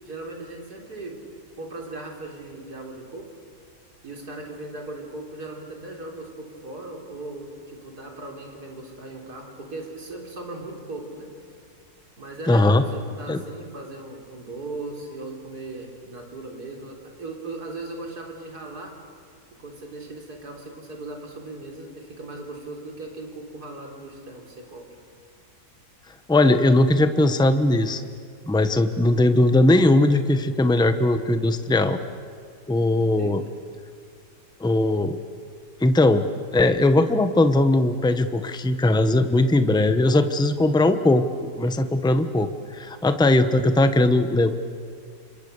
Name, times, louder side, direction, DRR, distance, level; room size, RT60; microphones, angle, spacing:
voice 1, 0.0-1.2 1.6-3.3 4.0-11.3 12.2-18.9 19.6-24.9 33.2-33.5 43.4-43.8, right 2 dB, 70° right, 1 dB, 4.4 m, -38 dB
voice 2, 12.5-12.8 13.3-13.4 26.3-28.0 28.5-32.0 32.7-33.4 34.6-35.2 35.8-36.2 36.5-41.2 41.5-44.6, left 2 dB, 5° left, 9 dB, 0.9 m, -19 dB
30.0 x 26.0 x 6.8 m, 2.3 s
omnidirectional pair, 1.7 m